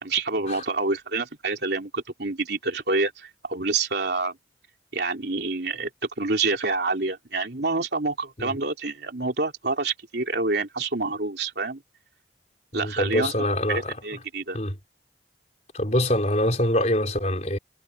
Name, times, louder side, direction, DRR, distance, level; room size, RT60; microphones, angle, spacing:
voice 1, 0.0-4.4 4.9-5.9 6.2-11.8 12.7-13.3 13.7-14.6, right 3 dB, 65° right, 3.3 m, -27 dB
voice 2, 12.7-13.9 14.5-14.7 15.7-17.6, left 1 dB, 40° left, 4.9 m, -24 dB
head